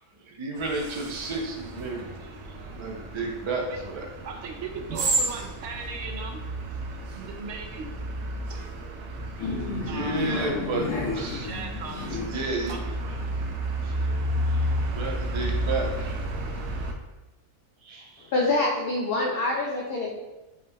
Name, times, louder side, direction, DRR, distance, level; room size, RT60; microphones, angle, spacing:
voice 1, 0.2-2.1 2.7-4.0 9.0-9.5 9.9-10.9 11.1-11.5 12.0-12.1 12.3-12.8 13.8-14.0 14.5-14.6 14.9-16.2 17.8-18.3, right 3 dB, 40° right, -1 dB, 0.4 m, -32 dB
sound 1, 0.6-16.9, right 1 dB, 90° right, 1.1 m, -32 dB
voice 2, 4.2-6.4 7.2-7.9 8.5-8.9 9.7-10.2 11.4-12.3 12.7-13.2, right 5 dB, 65° right, 3 dB, 0.8 m, -38 dB
sound 2, 9.4-12.5, left 3 dB, 80° left, 1.6 m, -32 dB
voice 3, 18.3-20.1, left 2 dB, 60° left, -2 dB, 0.7 m, -25 dB
5.3 x 3.7 x 2.2 m, 1.1 s
omnidirectional pair, 1.4 m